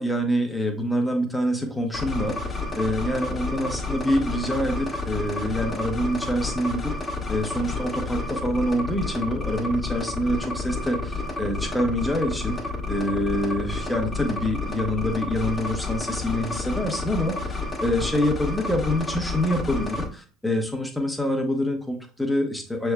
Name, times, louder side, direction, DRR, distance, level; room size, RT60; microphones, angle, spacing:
voice 1, 0.0-12.6 12.9-22.9, equal, 5° left, 4 dB, 1.1 m, -26 dB
sound 1, 1.9-20.1, left 3 dB, 25° left, 1.3 m, -30 dB
6.7 x 3.4 x 2.2 m, 0.41 s
figure-of-eight pair, 65°, 0 cm